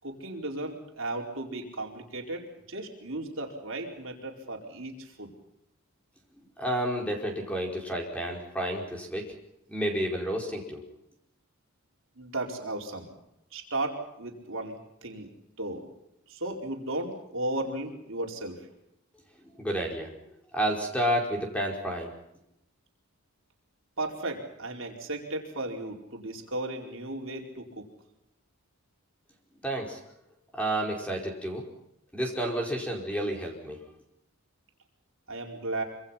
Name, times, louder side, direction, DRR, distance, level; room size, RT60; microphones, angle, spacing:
voice 1, 0.0-5.3 12.2-13.1 13.5-15.3 15.6-15.9 16.3-18.7 24.0-27.9 35.3-35.8, right 2 dB, 60° right, 1 dB, 4.7 m, -35 dB
voice 2, 6.6-9.3 9.7-10.8 19.6-20.1 20.5-22.1 29.6-30.0 30.6-31.6 32.1-33.8, right 1 dB, 5° left, 1 dB, 4.8 m, -30 dB
26.0 x 25.5 x 5.9 m, 0.82 s
head